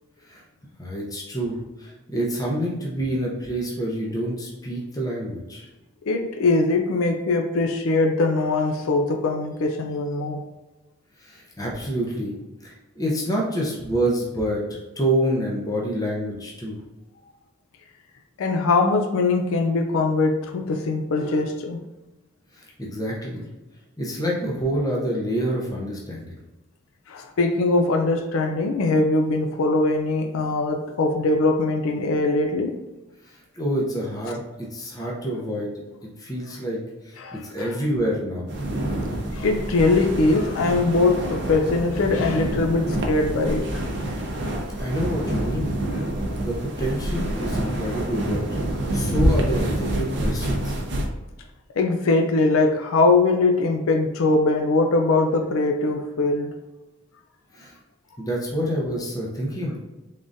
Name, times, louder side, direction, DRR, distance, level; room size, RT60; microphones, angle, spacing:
voice 1, 0.8-5.7 11.2-12.4 12.6-16.8 22.5-23.4 24.0-26.3 33.2-34.4 34.7-36.8 37.0-38.5 44.4-45.7 46.4-48.4 48.9-50.8 57.5-57.7 58.2-59.8, equal, 15° left, -3 dB, 0.7 m, -27 dB
voice 2, 6.1-10.4 18.4-21.8 27.1-32.8 37.2-37.8 39.3-43.8 51.8-56.5, left 3 dB, 80° left, 4 dB, 0.4 m, -21 dB
sound 1, 38.5-51.1, right 1 dB, 55° right, 0.6 m, -27 dB
3.8 x 3.6 x 2.6 m, 1.1 s
head